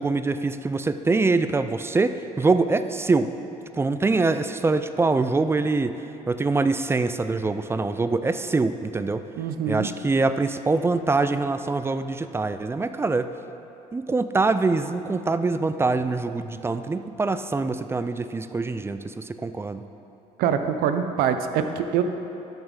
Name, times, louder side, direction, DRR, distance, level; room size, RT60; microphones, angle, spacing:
voice 1, 0.0-3.3 3.7-6.0 6.3-9.2 9.7-13.3 13.9-19.8, right 3 dB, 15° right, 11 dB, 0.4 m, -24 dB
voice 2, 9.4-9.9 20.4-22.0, right 8 dB, 80° right, 8 dB, 0.6 m, -24 dB
13.0 x 5.4 x 3.7 m, 3.0 s
cardioid pair, 90°, 15 cm